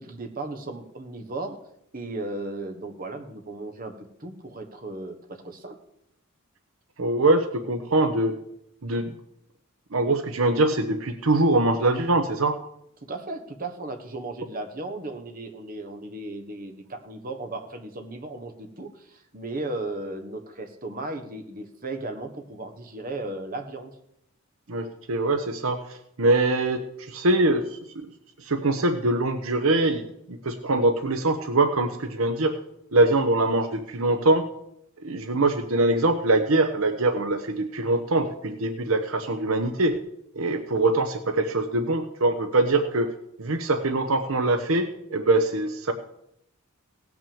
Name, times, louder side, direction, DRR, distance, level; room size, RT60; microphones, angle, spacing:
voice 1, 0.0-1.6 1.9-5.8 13.0-24.0, right 2 dB, 40° right, 6 dB, 1.4 m, -36 dB
voice 2, 7.0-8.4 8.8-9.1 9.9-12.6 24.7-28.1 28.4-32.5 32.9-34.5 35.0-40.0 40.3-43.1 43.4-45.9, right 2 dB, 70° right, 8 dB, 0.9 m, -23 dB
17.0 x 6.1 x 7.1 m, 0.76 s
head